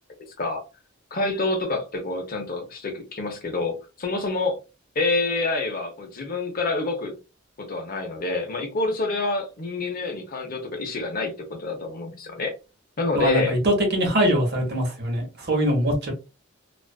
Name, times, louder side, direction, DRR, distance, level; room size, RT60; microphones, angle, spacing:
voice 1, 1.1-4.6 4.9-7.2 7.6-12.5 13.0-13.5, left 3 dB, 45° left, 0.7 m, -27 dB
voice 2, 13.1-16.1, equal, 55° right, 1.0 m, -22 dB
2.4 x 2.4 x 2.3 m
head